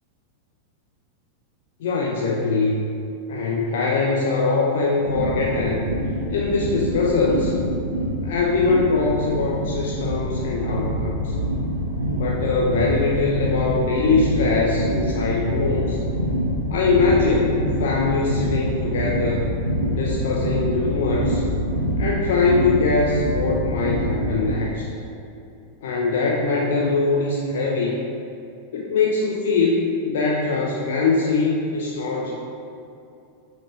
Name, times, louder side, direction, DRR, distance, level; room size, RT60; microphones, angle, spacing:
voice 1, 1.8-2.8 3.3-5.9 6.3-7.5 8.2-11.4 12.1-16.0 16.7-19.5 19.9-21.4 22.0-24.9 25.8-28.0 28.7-32.3, left 3 dB, 55° left, -3 dB, 0.7 m, -22 dB
sound 1, 5.0-24.5, equal, 85° right, 1.0 m, -26 dB
5.8 x 5.1 x 4.7 m, 2.7 s
figure-of-eight pair, 90°, 0 cm